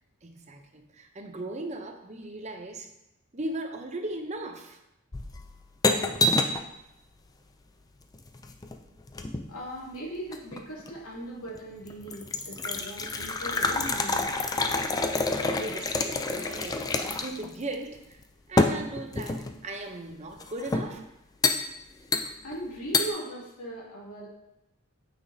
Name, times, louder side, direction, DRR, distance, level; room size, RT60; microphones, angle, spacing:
voice 1, 0.2-2.9 3.3-4.8 15.2-18.2 18.5-21.0, right 2 dB, 30° right, 5 dB, 0.6 m, -38 dB
sound 1, 5.1-6.7 8.1-9.5 10.3-11.0 11.5-11.6 11.9-17.5 17.7-17.8 18.6-19.6 20.4-20.9 21.4-21.6 22.1-22.6 22.9-23.1, left 2 dB, 15° left, 0.3 m, -28 dB
voice 2, 9.5-14.3 22.4-24.3, right 1 dB, 90° left, -5 dB, 2.4 m, -39 dB
9.1 x 5.8 x 2.7 m, 0.88 s
head